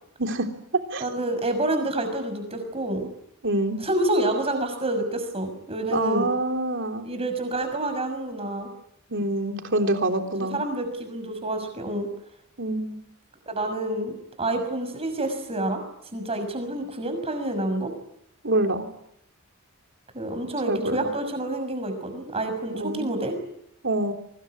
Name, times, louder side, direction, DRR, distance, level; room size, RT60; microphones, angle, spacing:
voice 1, 1.0-3.1 3.8-6.3 7.0-8.7 10.5-12.1 13.5-15.8 16.1-17.9 20.1-23.3, right 1 dB, 25° right, 7 dB, 6.3 m, -28 dB
voice 2, 3.4-3.8 5.9-7.0 9.1-10.6 12.6-13.0 18.4-18.9 20.7-21.1 22.8-23.1 23.8-24.1, right 1 dB, 55° right, 5 dB, 3.5 m, -26 dB
24.0 x 21.0 x 9.8 m, 0.77 s
head